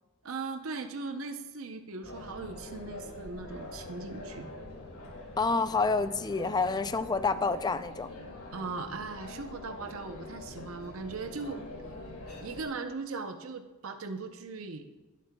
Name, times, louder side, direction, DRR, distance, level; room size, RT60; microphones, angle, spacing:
voice 1, 0.2-4.5 8.5-11.6 12.4-14.8, right 4 dB, 70° right, 6 dB, 0.7 m, -39 dB
sound 1, 2.0-12.6, left 2 dB, 80° left, 2.3 m, -44 dB
voice 2, 5.4-8.1, left 4 dB, 20° left, 13 dB, 0.3 m, -28 dB
18.0 x 8.3 x 2.2 m, 1.1 s
head